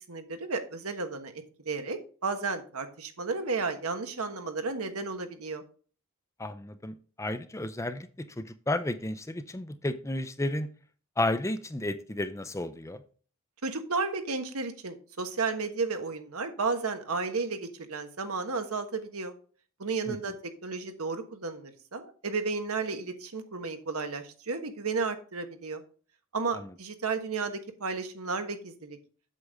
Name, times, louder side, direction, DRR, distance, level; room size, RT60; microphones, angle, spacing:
voice 1, 0.1-5.6 13.6-19.3 19.8-20.4 20.6-25.8 26.3-29.0, right 4 dB, 90° right, 7 dB, 1.3 m, -33 dB
voice 2, 6.4-8.1 8.4-10.7 11.2-13.0 20.1-20.2 26.5-26.7, left 1 dB, 15° left, 11 dB, 0.5 m, -32 dB
8.1 x 6.8 x 3.6 m, 0.40 s
head